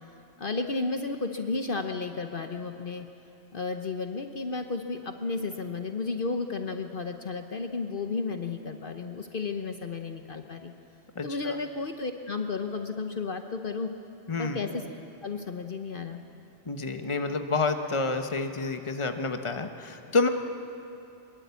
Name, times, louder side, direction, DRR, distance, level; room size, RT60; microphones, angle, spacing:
voice 1, 0.4-3.1 3.5-10.7 11.2-13.9 14.4-14.8 15.2-16.2, left 4 dB, 55° left, 6 dB, 1.1 m, -33 dB
voice 2, 11.2-11.6 14.3-14.6 16.7-20.3, left 3 dB, 30° left, 6 dB, 1.2 m, -29 dB
24.0 x 22.0 x 8.3 m, 2.8 s
omnidirectional pair, 1.1 m